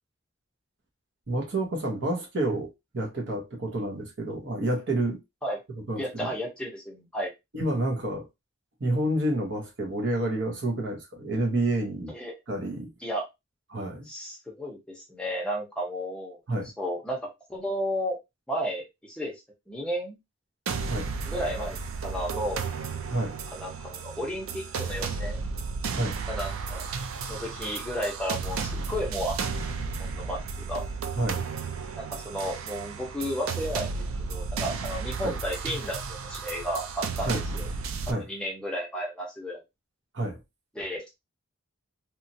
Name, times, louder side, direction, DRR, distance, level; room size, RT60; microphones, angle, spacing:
voice 1, 1.3-5.2 5.9-6.3 7.5-8.3 8.8-12.1 12.5-12.9 13.7-14.1 16.5-16.7 20.9-21.1 23.1-23.3 25.9-26.2 31.2-31.5 35.2-35.3 37.3-37.4 38.1-38.3 40.1-40.4, right 1 dB, 55° right, 0.9 m, -29 dB
voice 2, 6.0-7.3 12.1-12.3 13.0-13.2 14.1-16.4 16.8-17.2 17.5-18.2 18.5-19.4 19.7-20.2 21.3-21.8 22.0-22.6 23.5-25.4 26.3-26.8 27.3-29.4 29.7-30.4 30.7-30.8 32.0-37.3 37.5-37.7 38.1-39.6 40.7-41.0, equal, 5° left, 0.7 m, -33 dB
sound 1, 20.7-38.1, right 5 dB, 75° right, 0.4 m, -33 dB
2.9 x 2.4 x 2.6 m
head